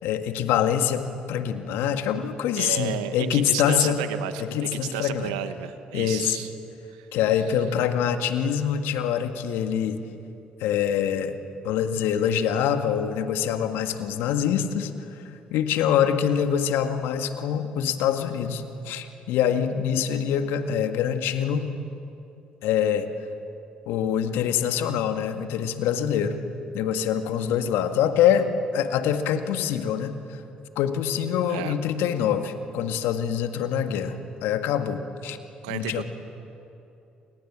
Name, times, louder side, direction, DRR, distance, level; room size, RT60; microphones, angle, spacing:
voice 1, 0.0-4.0 4.4-5.3 5.9-6.4 7.1-10.0 10.6-15.2 15.5-21.7 22.6-23.1 23.9-26.4 26.7-30.4 30.8-35.4 35.7-36.0, left 9 dB, 75° left, 7 dB, 1.8 m, -25 dB
voice 2, 2.6-6.5 6.9-7.1 31.5-31.7 35.6-36.0, right 11 dB, 85° right, 10 dB, 1.2 m, -32 dB
30.0 x 26.5 x 7.5 m, 2.8 s
hypercardioid pair, 50°, 4 cm